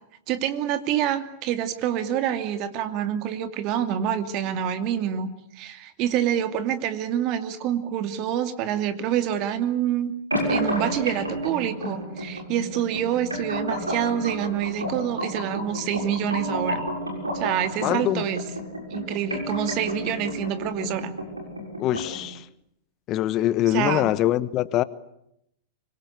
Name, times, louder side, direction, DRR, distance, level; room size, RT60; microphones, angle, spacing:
voice 1, 0.3-5.3 5.6-10.1 10.5-16.8 17.3-18.4 18.9-21.1 23.7-24.1, right 10 dB, 45° right, 2.6 m, -27 dB
sound 1, 10.3-22.3, equal, 90° right, 6.5 m, -31 dB
voice 2, 17.8-18.2 21.8-22.4 23.1-24.8, left 14 dB, 40° left, 1.0 m, -23 dB
25.0 x 22.0 x 8.6 m
figure-of-eight pair, 95°, 0 cm